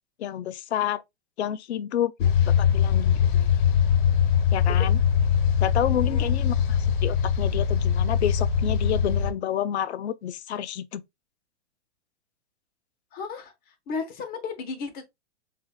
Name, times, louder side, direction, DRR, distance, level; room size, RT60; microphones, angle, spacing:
voice 1, 0.2-1.0 1.4-2.1 2.6-3.2 4.5-5.0 5.6-11.0, left 10 dB, 75° left, 0.7 m, -29 dB
sound 1, 2.2-9.3, left 8 dB, 50° left, 1.2 m, -22 dB
voice 2, 5.9-6.3 13.1-15.0, left 5 dB, 25° left, 1.1 m, -35 dB
7.0 x 2.7 x 2.2 m
hypercardioid pair, 135°, 33 cm